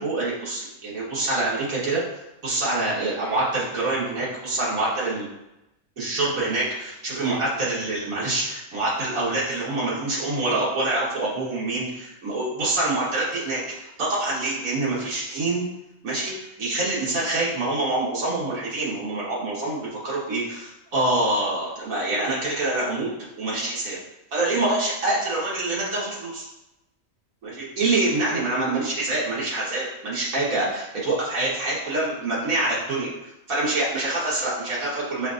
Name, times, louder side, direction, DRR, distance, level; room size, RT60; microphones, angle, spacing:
voice 1, 0.0-2.0 2.4-5.3 6.0-15.6 16.0-16.3 16.6-23.1 23.4-24.0 24.3-26.4 27.4-33.1 33.5-35.3, right 2 dB, 80° right, -7 dB, 1.8 m, -26 dB
7.4 x 2.5 x 2.4 m, 0.91 s
omnidirectional pair, 1.4 m